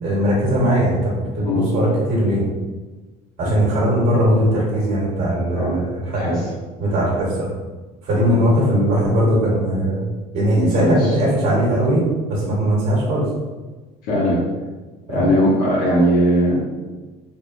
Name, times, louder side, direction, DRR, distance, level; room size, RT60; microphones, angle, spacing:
voice 1, 0.0-2.4 3.4-6.3 6.8-7.5 8.0-10.1 10.3-12.0 12.3-13.3 15.1-15.3, equal, 60° right, -6 dB, 1.1 m, -19 dB
voice 2, 5.5-5.8 6.1-6.4 10.5-11.1 14.1-14.4 15.1-16.6, equal, 70° left, -7 dB, 0.9 m, -19 dB
3.4 x 2.1 x 2.4 m, 1.3 s
cardioid pair, 150°, 15 cm